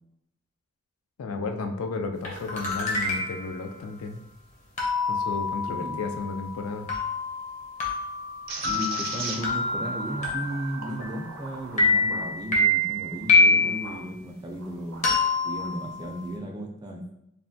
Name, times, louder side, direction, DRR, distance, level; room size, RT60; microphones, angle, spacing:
voice 1, 1.2-4.2 5.1-6.9, left 3 dB, 90° left, 6 dB, 0.4 m, -33 dB
sound 1, 2.2-3.6 4.8-11.4 11.8-14.0 15.0-16.3, left 2 dB, 35° left, 0.6 m, -26 dB
voice 2, 5.7-6.0 8.6-15.1 15.4-17.0, right 1 dB, 20° right, 1 dB, 0.3 m, -35 dB
sound 2, 8.5-14.0 14.5-15.7, right 4 dB, 70° right, 0.5 m, -39 dB
3.2 x 2.1 x 2.6 m, 0.80 s
head